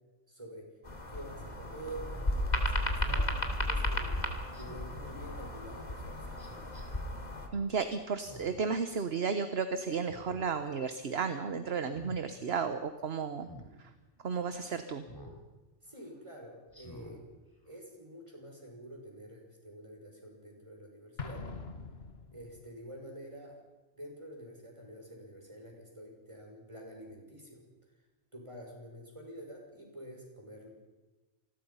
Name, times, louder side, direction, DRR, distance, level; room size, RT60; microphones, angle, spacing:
voice 1, 0.3-0.7 1.1-4.2 4.5-6.5 14.1-14.2 15.8-17.2 17.6-21.5 22.3-23.6 24.0-27.6 28.3-30.7, right 1 dB, 25° right, 0 dB, 6.1 m, -48 dB
sound 1, 0.8-7.5, left 1 dB, 35° left, 2.9 m, -34 dB
Speech synthesizer, 1.4-1.6 3.0-3.3 4.5-5.0 6.4-6.8 8.1-8.7 9.1-9.2 10.0-10.5 10.9-11.2 11.8-12.2 13.4-13.7 15.1-15.4 15.9-16.0 16.7-17.2 17.7-17.8, left 1 dB, 20° left, 3.7 m, -50 dB
voice 2, 7.5-13.5 14.2-15.0, right 5 dB, 60° right, 10 dB, 1.3 m, -33 dB
Explosion, 21.2-22.8, left 4 dB, 55° left, 1.9 m, -43 dB
27.5 x 20.5 x 5.6 m, 1.2 s
omnidirectional pair, 1.2 m